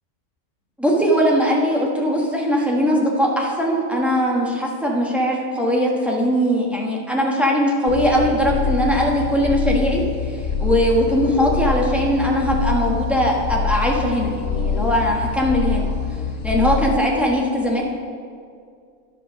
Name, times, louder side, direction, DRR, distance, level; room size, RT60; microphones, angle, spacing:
voice 1, 0.8-10.0 10.3-15.9 16.4-17.9, equal, ahead, -2 dB, 1.1 m, -20 dB
sound 1, 7.9-17.0, left 5 dB, 65° left, 0.9 m, -25 dB
10.5 x 5.2 x 6.2 m, 2.3 s
omnidirectional pair, 1.3 m